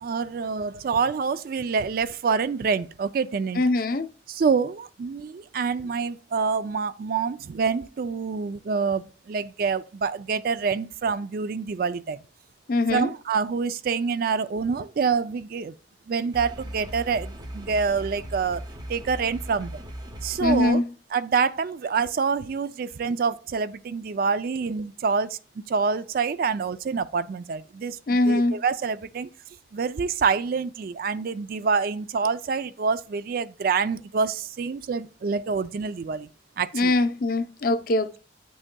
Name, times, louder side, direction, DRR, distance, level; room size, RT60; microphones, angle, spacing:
voice 1, 0.0-3.6 4.3-12.2 12.9-15.7 16.1-18.6 18.9-19.8 20.2-20.8 21.1-25.4 25.7-28.0 28.3-29.3 29.7-36.3 36.6-36.9, right 5 dB, 50° right, 0.3 m, -26 dB
voice 2, 3.6-4.1 12.7-13.1 20.4-20.9 28.1-28.6 36.7-38.2, left 2 dB, 50° left, 0.6 m, -22 dB
sound 1, 16.3-20.7, equal, 25° right, 0.7 m, -38 dB
8.9 x 6.2 x 2.2 m
head